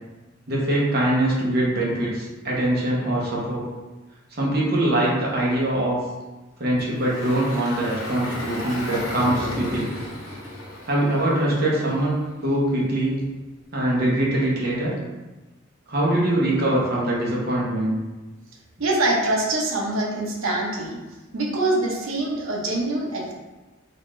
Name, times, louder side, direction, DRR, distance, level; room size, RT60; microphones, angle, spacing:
voice 1, 0.5-3.6 4.4-6.0 6.6-9.9 10.9-13.2 13.7-15.0 15.9-17.9, right 1 dB, 50° right, -5 dB, 0.9 m, -23 dB
Engine, 6.8-12.1, left 1 dB, 85° left, 0.9 m, -33 dB
voice 2, 18.8-21.0 21.3-23.3, right 2 dB, 75° right, -1 dB, 0.7 m, -24 dB
3.9 x 2.5 x 3.1 m, 1.1 s
head